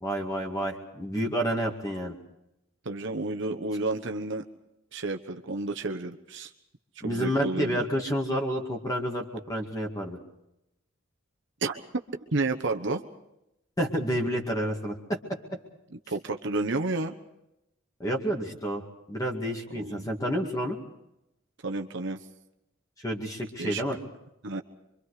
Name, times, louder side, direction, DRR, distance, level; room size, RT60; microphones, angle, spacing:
voice 1, 0.0-2.1 7.0-10.2 13.8-15.2 18.0-20.8 23.0-24.0, equal, 20° left, 0 dB, 2.2 m, -29 dB
voice 2, 2.8-4.4 4.9-6.5 7.0-7.8 11.6-11.8 12.3-13.0 16.1-17.2 19.7-20.1 21.6-22.2 23.6-23.8 24.4-24.6, right 2 dB, 65° right, 5 dB, 1.1 m, -31 dB
25.5 x 24.5 x 4.9 m, 0.85 s
head